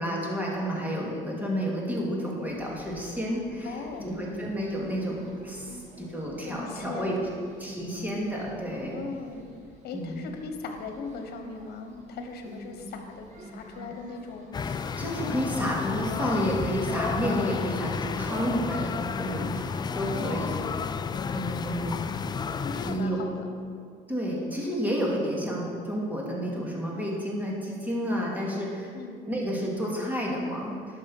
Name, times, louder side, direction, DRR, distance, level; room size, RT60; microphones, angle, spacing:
voice 1, 0.0-7.2 7.6-9.0 9.9-10.3 14.6-20.6 21.3-22.0 22.8-23.2 24.1-28.9 29.3-31.0, equal, 10° right, -3 dB, 2.3 m, -31 dB
sound 1, 2.5-15.7, right 1 dB, 45° right, 1.8 m, -47 dB
voice 2, 3.6-4.1 6.4-7.4 8.9-9.4 9.8-14.5 16.2-16.4 20.0-20.6 22.6-23.6 28.9-29.2, left 4 dB, 70° left, 5 dB, 1.3 m, -39 dB
sound 2, 14.5-23.1, left 5 dB, 25° left, 0.3 m, -31 dB
11.0 x 6.2 x 5.5 m, 2.2 s
cardioid pair, 110°, 17 cm